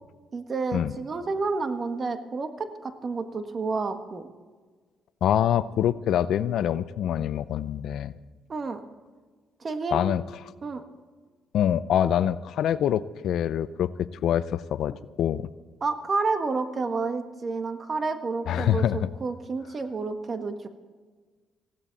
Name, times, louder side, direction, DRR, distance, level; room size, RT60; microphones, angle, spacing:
voice 1, 0.3-4.3 8.5-8.8 9.6-10.1 10.6-10.8 15.8-20.6, right 4 dB, 40° right, 8 dB, 1.5 m, -30 dB
voice 2, 5.2-8.1 9.9-10.2 11.5-15.5 18.5-19.1, left 10 dB, 75° left, 16 dB, 0.5 m, -25 dB
19.5 x 16.0 x 4.1 m, 1.4 s
cardioid pair, 90°, 0 cm